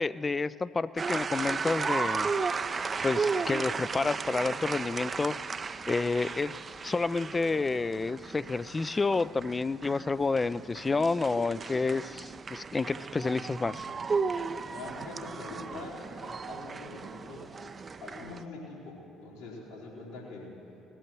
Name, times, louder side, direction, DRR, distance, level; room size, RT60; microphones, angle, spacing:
voice 1, 0.0-2.3 3.0-5.4 5.9-6.6 6.8-13.8, left 3 dB, 25° left, 18 dB, 0.4 m, -29 dB
sound 1, 1.0-18.4, right 5 dB, 35° right, 0.5 m, -35 dB
voice 2, 14.7-17.5 18.0-20.6, left 3 dB, 80° left, -7 dB, 4.1 m, -44 dB
18.5 x 13.5 x 4.7 m, 2.8 s
hypercardioid pair, 55°, 0 cm